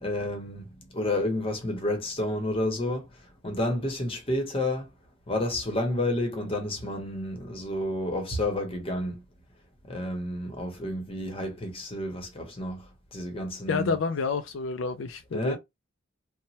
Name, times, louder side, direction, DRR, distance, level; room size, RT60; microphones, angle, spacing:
voice 1, 0.0-0.7 0.9-3.1 3.4-4.9 5.3-9.2 9.9-12.8 13.1-13.9 15.3-15.6, left 1 dB, 30° left, 0.9 m, -30 dB
voice 2, 13.7-15.6, left 4 dB, 70° left, 0.4 m, -29 dB
3.0 x 2.1 x 2.7 m
head